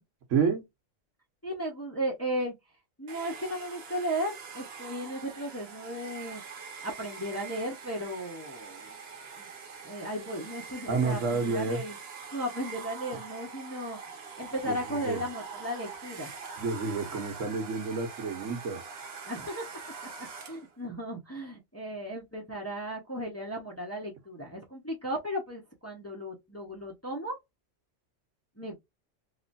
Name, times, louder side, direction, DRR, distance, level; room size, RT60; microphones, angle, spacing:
voice 1, 0.3-0.7 10.9-11.8 14.6-15.2 16.6-18.8, right 4 dB, 85° right, 1.3 m, -29 dB
voice 2, 1.4-2.5 3.0-6.4 6.8-9.0 9.4-9.5 9.8-12.0 12.3-16.3 19.2-19.6 20.2-27.4 28.6-28.8, equal, 15° left, 0.9 m, -35 dB
Domestic sounds home sounds, 3.1-20.8, right 5 dB, 60° right, 1.1 m, -44 dB
3.1 x 2.9 x 2.6 m
omnidirectional pair, 1.3 m